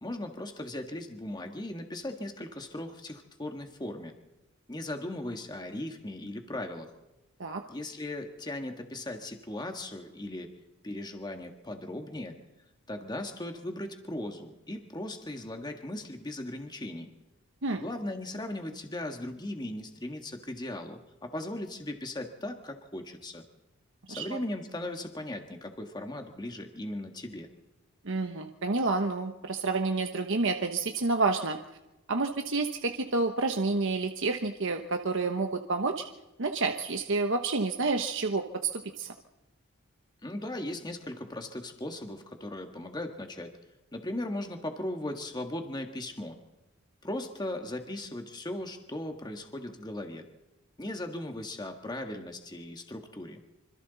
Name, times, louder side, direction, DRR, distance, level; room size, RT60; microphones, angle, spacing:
voice 1, 0.0-4.1 4.7-6.9 7.7-10.5 10.8-12.4 12.9-17.1 17.7-23.4 24.1-27.5 40.2-43.5 43.9-46.4 47.0-50.2 50.8-53.4, left 1 dB, 20° left, 4 dB, 1.6 m, -38 dB
voice 2, 28.0-31.6 32.1-36.0 36.4-38.4 38.7-39.1, right 3 dB, 60° right, 5 dB, 1.2 m, -29 dB
26.0 x 26.0 x 4.1 m, 0.99 s
head